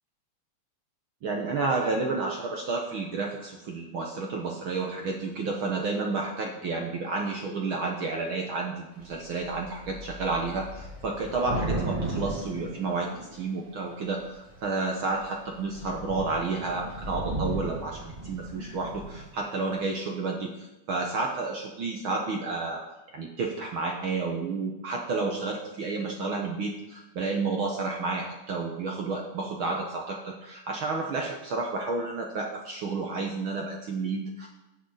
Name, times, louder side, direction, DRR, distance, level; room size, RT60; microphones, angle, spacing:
voice 1, 1.2-22.8 23.1-34.5, right 3 dB, 60° right, 1 dB, 1.4 m, -31 dB
Thunder / Rain, 9.0-9.2 9.4-13.5 14.3-14.7 15.1-15.3 15.5-19.3, right 1 dB, 15° right, 1.2 m, -35 dB
16.5 x 6.4 x 4.1 m, 1.0 s
omnidirectional pair, 3.4 m